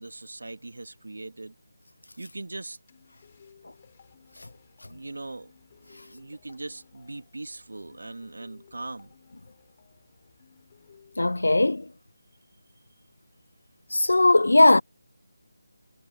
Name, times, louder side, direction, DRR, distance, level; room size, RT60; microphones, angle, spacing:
voice 1, 0.0-1.5 2.2-2.8 4.9-5.5 5.8-9.1, right 2 dB, 75° right, 2.5 m, -40 dB
sound 1, 2.9-11.7, left 7 dB, 35° left, 5.6 m, -58 dB
voice 2, 11.2-11.9 13.9-14.8, left 2 dB, 75° left, 0.4 m, -18 dB
figure-of-eight pair, 160°, 0 cm